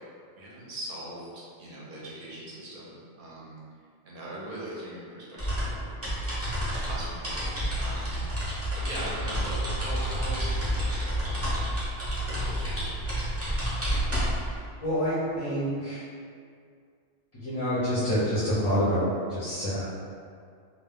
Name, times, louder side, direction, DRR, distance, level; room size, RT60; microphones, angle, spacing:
voice 1, 0.4-3.6 4.1-5.9 6.8-8.2 8.7-11.8 12.2-13.0, right 1 dB, 55° right, -6 dB, 0.7 m, -40 dB
sound 1, 5.4-14.6, equal, 20° right, 0.5 m, -29 dB
voice 2, 14.8-16.0 17.4-19.8, equal, 35° left, -11 dB, 0.5 m, -27 dB
2.1 x 2.1 x 3.5 m, 2.2 s
omnidirectional pair, 1.2 m